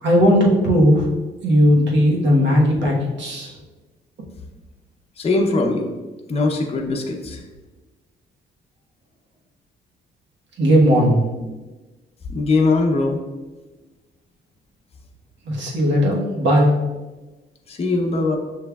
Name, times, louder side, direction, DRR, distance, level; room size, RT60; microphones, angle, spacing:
voice 1, 0.0-1.1 1.4-3.5 10.6-11.2 15.4-16.7, equal, 65° right, -2 dB, 1.2 m, -16 dB
voice 2, 5.2-5.9 6.3-7.4 12.3-13.2 17.7-18.4, left 3 dB, 30° left, 0 dB, 0.7 m, -20 dB
6.6 x 3.1 x 2.3 m, 1.2 s
cardioid pair, 90°, 20 cm